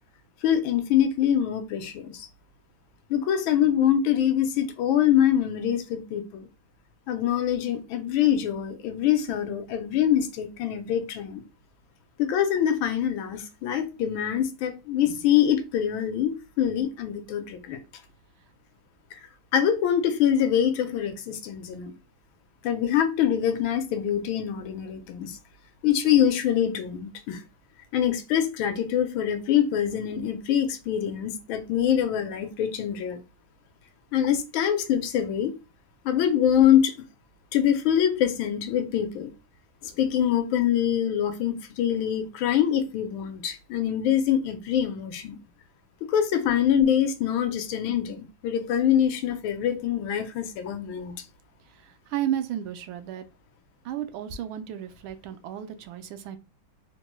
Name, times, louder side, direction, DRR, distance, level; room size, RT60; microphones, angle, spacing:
voice 1, 0.4-2.3 3.1-6.5 7.1-11.4 12.2-17.8 19.5-21.9 22.6-25.4 25.8-27.4 27.9-33.2 34.1-35.6 36.0-36.9 37.5-39.3 39.8-45.4 46.0-51.2, left 10 dB, 85° left, 1.4 m, -24 dB
voice 2, 51.6-53.3 53.8-56.4, right 10 dB, 85° right, 1.4 m, -33 dB
3.7 x 2.2 x 3.0 m
omnidirectional pair, 2.2 m